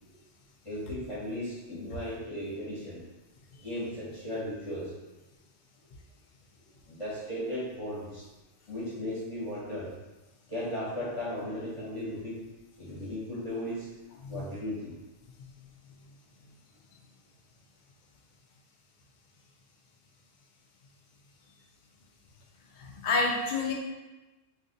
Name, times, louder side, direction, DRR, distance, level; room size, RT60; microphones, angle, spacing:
voice 1, 0.6-3.0 3.6-4.9 6.9-8.3 8.7-9.9 10.5-12.4 12.8-13.9 14.3-14.9, left 1 dB, 30° left, -8 dB, 0.9 m, -36 dB
voice 2, 22.8-23.7, left 3 dB, 60° left, -1 dB, 0.5 m, -29 dB
2.6 x 2.4 x 3.9 m, 1.1 s
omnidirectional pair, 1.2 m